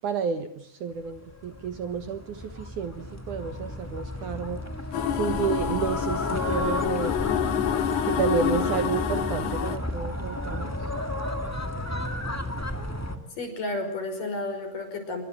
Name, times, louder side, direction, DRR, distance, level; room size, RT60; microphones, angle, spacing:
voice 1, 0.0-4.6 5.2-7.4 8.1-10.8, right 6 dB, 60° right, 8 dB, 2.4 m, -30 dB
sound 1, 1.1-13.2, left 1 dB, 15° left, 0.6 m, -33 dB
sound 2, 4.9-9.8, left 9 dB, 85° left, 3.9 m, -28 dB
voice 2, 13.4-15.2, left 2 dB, 55° left, 7 dB, 6.9 m, -32 dB
28.0 x 23.5 x 7.6 m, 0.66 s
omnidirectional pair, 4.6 m